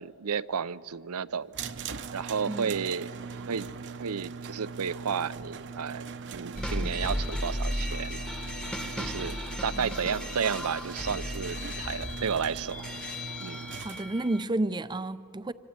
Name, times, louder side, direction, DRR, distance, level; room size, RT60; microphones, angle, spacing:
voice 1, 0.0-1.5 2.1-8.2 9.0-12.8 13.4-13.7, right 6 dB, 80° right, 0.6 m, -32 dB
sound 1, 1.5-14.0, right 5 dB, 55° right, 0.8 m, -41 dB
voice 2, 2.5-2.8 9.8-9.9 13.8-15.5, right 2 dB, 20° right, 0.5 m, -31 dB
sound 2, 6.5-14.4, left 1 dB, 5° left, 1.1 m, -35 dB
26.0 x 25.0 x 8.9 m
head